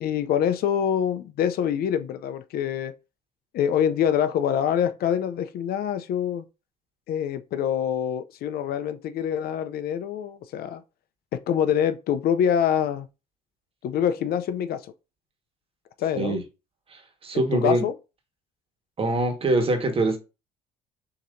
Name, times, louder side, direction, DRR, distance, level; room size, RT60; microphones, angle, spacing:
voice 1, 0.0-2.9 3.5-6.4 7.1-10.8 11.3-13.1 13.8-14.8 16.0-16.4 17.3-17.9, left 9 dB, 65° left, 0.5 m, -25 dB
voice 2, 16.9-17.9 19.0-20.2, right 2 dB, 35° right, 1.4 m, -24 dB
6.5 x 2.9 x 2.6 m
cardioid pair, 110°, 17 cm